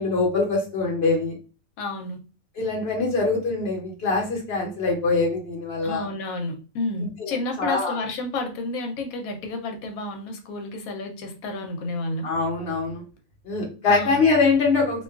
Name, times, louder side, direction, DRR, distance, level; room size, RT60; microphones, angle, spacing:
voice 1, 0.0-1.4 2.6-6.1 7.2-7.9 12.2-13.0 13.4-15.0, left 4 dB, 50° left, 0 dB, 0.9 m, -23 dB
voice 2, 1.8-2.2 5.8-12.3 13.9-14.2, left 2 dB, 80° left, 4 dB, 1.1 m, -31 dB
2.5 x 2.3 x 2.3 m, 0.35 s
omnidirectional pair, 1.5 m